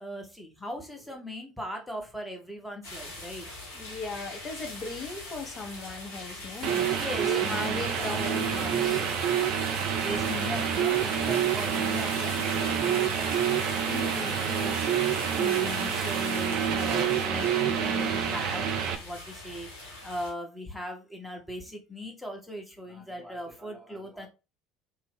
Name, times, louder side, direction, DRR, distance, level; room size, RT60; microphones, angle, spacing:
voice 1, 0.0-3.5 6.1-9.2 10.0-14.9 15.4-24.3, left 1 dB, 5° left, 0.9 m, -39 dB
sound 1, 2.8-20.3, left 2 dB, 75° left, 0.9 m, -41 dB
voice 2, 3.7-6.9 7.2-9.1 13.8-14.9, left 3 dB, 35° left, 0.7 m, -38 dB
sound 2, 6.6-18.9, right 8 dB, 55° right, 0.4 m, -27 dB
2.7 x 2.0 x 3.3 m
figure-of-eight pair, 60°, 0 cm